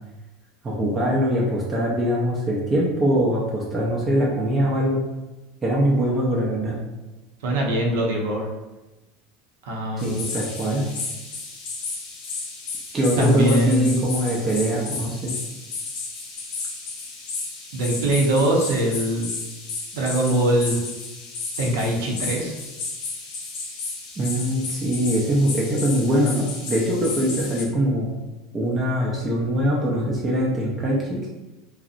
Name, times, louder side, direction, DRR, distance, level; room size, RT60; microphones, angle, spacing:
voice 1, 0.6-5.0 5.6-6.8 10.0-10.9 12.9-15.4 24.2-28.2 28.5-31.2, equal, 20° right, -5 dB, 0.5 m, -22 dB
voice 2, 7.4-8.5 9.7-10.1 13.2-13.9 17.7-19.3 19.9-20.8 21.6-22.5, right 1 dB, 80° right, -1 dB, 0.6 m, -22 dB
sound 1, 10.0-27.6, left 4 dB, 70° left, 0.8 m, -33 dB
2.7 x 2.0 x 2.4 m, 1.1 s
supercardioid pair, 125°, 0 cm